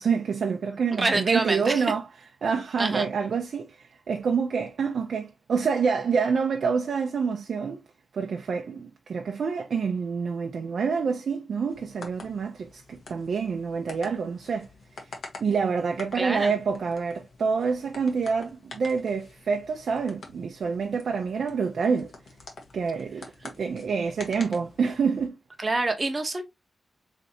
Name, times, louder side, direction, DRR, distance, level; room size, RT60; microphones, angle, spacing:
voice 1, 0.0-2.0 2.4-7.8 8.1-14.7 15.4-22.1 22.7-25.4, right 5 dB, 75° right, 0.5 m, -27 dB
voice 2, 0.9-1.8 2.8-3.1 16.1-16.5 25.6-26.4, right 2 dB, 30° right, 0.8 m, -26 dB
sound 1, 11.7-25.3, left 3 dB, 85° left, 1.3 m, -47 dB
4.1 x 3.3 x 2.8 m
wide cardioid pair, 145°, 0 cm